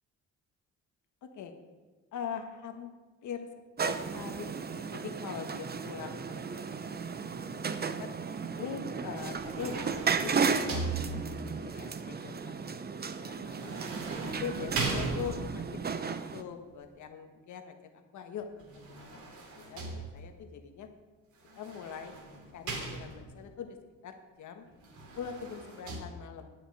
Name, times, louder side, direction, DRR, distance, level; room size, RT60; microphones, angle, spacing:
voice 1, 1.2-1.5 2.1-2.9 3.2-3.5 3.8-7.5 8.0-8.1 8.6-12.8 13.1-13.7 14.4-16.0 16.3-20.9 21.6-22.1 22.5-23.8 24.0-24.7 25.2-26.5, left 7 dB, 75° left, 6 dB, 1.5 m, -42 dB
sound 1, 3.8-16.4, right 5 dB, 30° right, 0.8 m, -34 dB
sound 2, 9.2-11.6 13.5-15.7 18.6-20.5 21.5-23.4 24.8-26.0, right 3 dB, 70° right, 2.9 m, -39 dB
9.3 x 7.8 x 8.7 m, 1.3 s
cardioid pair, 90°, 30 cm